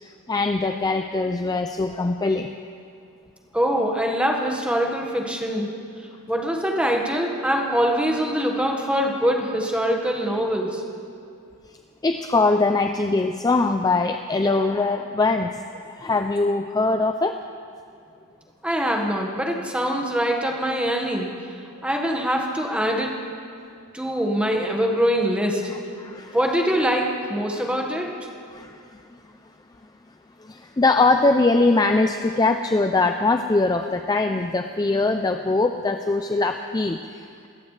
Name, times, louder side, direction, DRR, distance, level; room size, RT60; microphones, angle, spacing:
voice 1, 0.0-2.5 12.0-17.4 26.0-26.4 27.6-27.7 28.5-29.0 30.4-37.5, left 3 dB, 15° left, 6 dB, 0.4 m, -22 dB
voice 2, 3.5-5.7 6.3-10.8 18.6-21.3 21.8-23.1 23.9-25.6 26.3-28.2, equal, 5° right, 1 dB, 1.5 m, -23 dB
25.5 x 14.5 x 3.3 m, 2.4 s
head